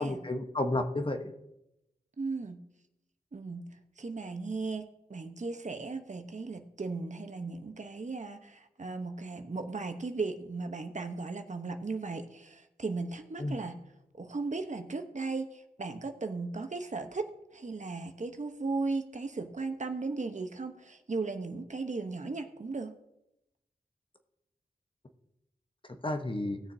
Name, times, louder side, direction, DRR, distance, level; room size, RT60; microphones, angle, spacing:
voice 1, 0.0-1.3 13.4-13.6 26.0-26.6, left 2 dB, 30° left, 6 dB, 1.1 m, -31 dB
voice 2, 2.2-2.6 3.3-13.8 14.1-23.0, right 3 dB, 50° right, 7 dB, 1.0 m, -36 dB
18.5 x 6.7 x 2.8 m, 0.86 s
cardioid pair, 50°, 16 cm